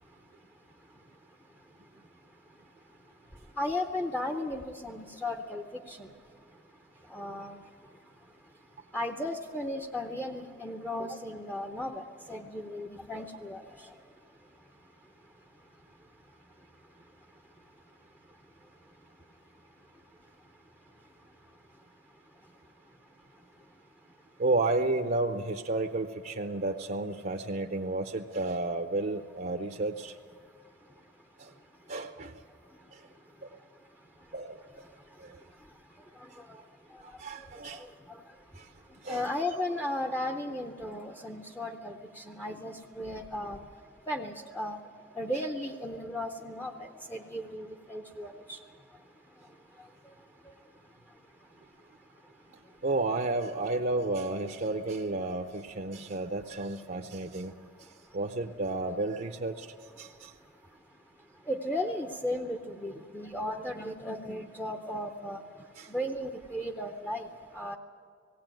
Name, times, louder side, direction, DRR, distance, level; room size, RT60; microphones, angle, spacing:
voice 1, 3.6-6.1 7.1-7.6 8.9-13.6 36.4-36.5 39.1-43.6 44.1-44.8 45.2-48.6 61.5-65.4 65.9-67.3 67.5-67.8, left 1 dB, 10° left, 4 dB, 0.7 m, -35 dB
voice 2, 24.4-30.1 31.9-32.3 34.3-34.6 37.2-37.8 39.0-39.3 52.8-57.5 58.1-59.7 60.0-60.3 65.8-65.9, right 2 dB, 50° right, 6 dB, 0.7 m, -31 dB
17.5 x 17.5 x 9.1 m, 2.2 s
head